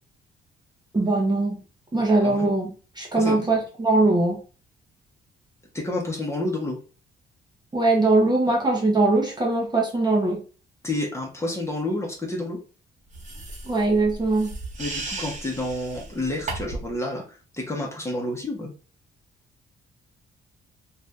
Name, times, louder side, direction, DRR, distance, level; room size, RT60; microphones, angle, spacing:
voice 1, 0.9-1.6 1.9-2.7 3.0-4.4 7.7-10.4 13.7-14.5, right 2 dB, 20° right, -1 dB, 1.0 m, -21 dB
voice 2, 3.2-3.5 5.7-6.8 10.8-12.6 14.8-18.7, left 1 dB, 15° left, -1 dB, 1.0 m, -29 dB
sound 1, 13.1-16.9, right 3 dB, 40° right, 1.2 m, -35 dB
2.6 x 2.6 x 3.4 m, 0.36 s
cardioid pair, 90°, 20 cm